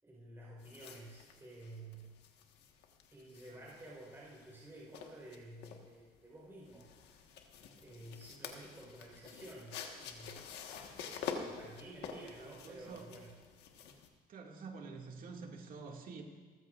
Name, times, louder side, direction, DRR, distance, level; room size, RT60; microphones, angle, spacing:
voice 1, 0.0-2.1 3.1-6.9 7.8-10.4 11.4-13.3, right 1 dB, 15° right, -4 dB, 4.3 m, -52 dB
sound 1, 0.6-14.1, left 6 dB, 85° left, 1.5 m, -48 dB
voice 2, 12.4-13.1 14.3-16.2, right 4 dB, 55° right, 1 dB, 2.2 m, -48 dB
28.5 x 14.5 x 2.5 m, 1.4 s
cardioid pair, 110°, 17 cm